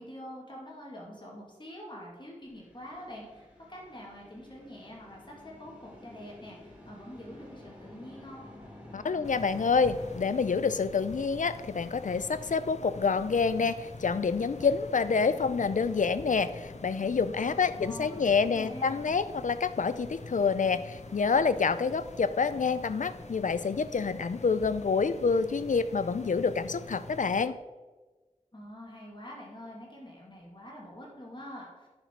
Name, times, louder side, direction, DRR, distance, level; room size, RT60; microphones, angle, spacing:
voice 1, 0.0-8.5 17.5-19.1 28.5-31.9, equal, 35° left, -3 dB, 2.5 m, -45 dB
sound 1, 2.4-10.2, left 1 dB, 10° right, 2.9 m, -51 dB
voice 2, 8.9-27.6, left 5 dB, 75° left, 13 dB, 0.5 m, -27 dB
sound 2, 9.2-27.4, left 3 dB, 60° left, 0.9 m, -45 dB
10.5 x 5.9 x 4.6 m, 1.3 s
wide cardioid pair, 65°, 13 cm